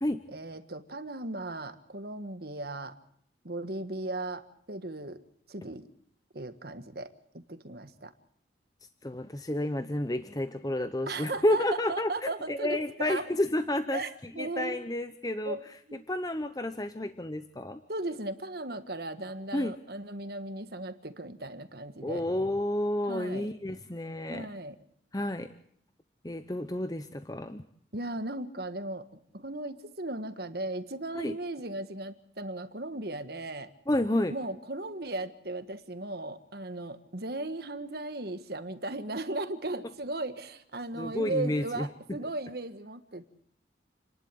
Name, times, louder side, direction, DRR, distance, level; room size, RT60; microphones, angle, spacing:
voice 1, 0.3-2.9 3.4-5.2 5.5-5.9 6.3-8.1 11.1-13.3 13.9-14.8 15.4-15.6 15.9-16.1 17.9-22.2 23.1-23.5 24.3-24.7 27.9-33.7 34.3-43.2, right 2 dB, 55° right, 10 dB, 1.6 m, -37 dB
voice 2, 9.0-14.0 14.4-15.6 16.1-17.8 19.5-19.7 22.0-24.5 25.1-25.5 26.2-27.6 31.1-31.3 33.9-34.3 41.0-41.9, left 1 dB, 20° left, 10 dB, 0.8 m, -30 dB
29.5 x 11.5 x 8.5 m, 0.67 s
head